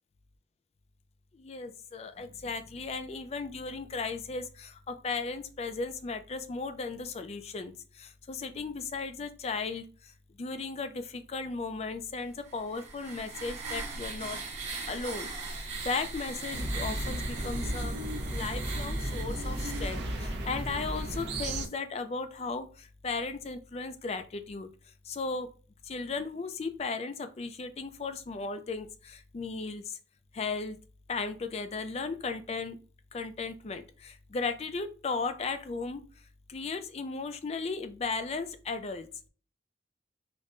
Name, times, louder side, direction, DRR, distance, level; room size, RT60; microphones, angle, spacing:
voice 1, 1.3-10.1 10.4-14.4 14.9-17.9 18.3-24.7 25.1-25.5 25.8-30.0 30.3-30.8 31.1-32.8 33.1-36.0 36.5-39.1, left 4 dB, 35° left, 10 dB, 0.4 m, -36 dB
sound 1, 12.5-20.0, right 3 dB, 40° right, 1.0 m, -39 dB
sound 2, 16.5-21.7, right 1 dB, 70° right, 0.6 m, -34 dB
5.1 x 2.1 x 2.5 m, 0.38 s
head